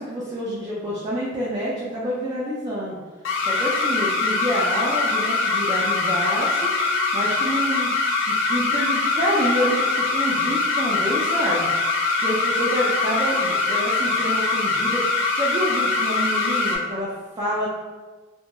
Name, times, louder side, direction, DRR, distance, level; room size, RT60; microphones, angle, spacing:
voice 1, 0.0-3.0 3.4-6.8 7.1-7.9 8.3-11.7 12.2-17.7, equal, 20° right, -7 dB, 0.3 m, -27 dB
sound 1, 3.2-16.8, left 3 dB, 80° left, 0.4 m, -23 dB
2.8 x 2.1 x 2.2 m, 1.3 s
head